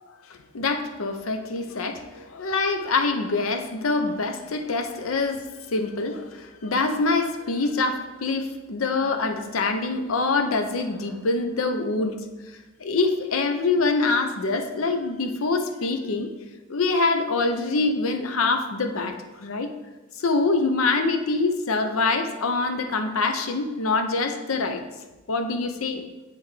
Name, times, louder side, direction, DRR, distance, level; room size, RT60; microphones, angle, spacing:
voice 1, 0.3-12.3 12.8-16.3 16.7-19.7 20.2-24.8 25.3-26.0, left 3 dB, 85° left, 6 dB, 0.7 m, -25 dB
9.7 x 3.4 x 3.2 m, 1.1 s
head